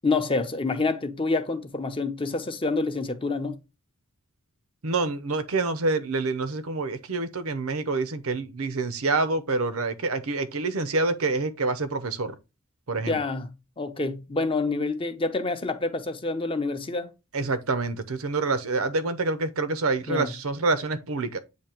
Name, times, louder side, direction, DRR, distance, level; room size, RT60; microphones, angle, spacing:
voice 1, 0.0-3.5 13.1-13.5 13.8-17.1 20.1-20.3, left 3 dB, 25° left, 0.7 m, -27 dB
voice 2, 4.8-12.4 12.9-13.2 17.3-21.4, right 3 dB, 65° right, 0.8 m, -27 dB
8.4 x 2.8 x 4.4 m
head